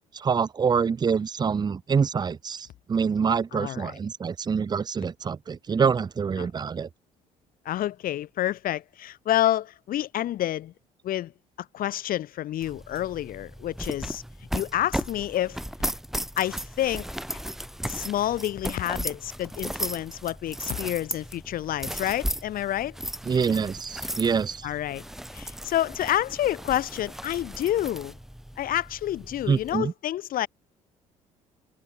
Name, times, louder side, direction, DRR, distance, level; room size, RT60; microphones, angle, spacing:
voice 1, 0.1-6.9 23.3-24.7 29.5-29.9, right 6 dB, 25° right, 0.6 m, -26 dB
voice 2, 3.5-3.9 6.4-6.5 7.7-10.7 11.0-11.3 11.7-14.2 14.5-15.9 16.4-17.4 17.9-23.0 24.6-25.0 25.3-28.1 28.6-30.5, left 12 dB, 55° left, 2.0 m, -29 dB
sound 1, 12.6-29.8, equal, ahead, 2.0 m, -36 dB
figure-of-eight pair, 50°, 18 cm